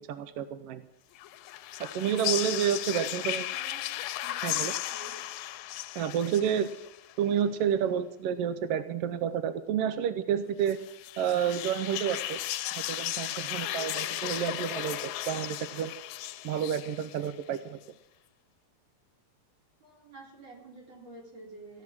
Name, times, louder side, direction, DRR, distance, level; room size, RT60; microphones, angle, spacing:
voice 1, 0.1-0.8 1.8-3.5 4.4-4.7 5.9-6.7 7.2-10.8 11.2-12.4 12.9-16.0 16.4-17.8, right 9 dB, 80° right, 11 dB, 1.4 m, -30 dB
sound 1, 1.2-7.1 10.6-17.6, left 14 dB, 80° left, 1.9 m, -35 dB
voice 2, 3.0-3.9 4.2-4.4 4.9-5.2 19.8-21.8, right 2 dB, 40° right, -2 dB, 4.4 m, -50 dB
15.5 x 11.0 x 6.0 m, 0.87 s
omnidirectional pair, 3.3 m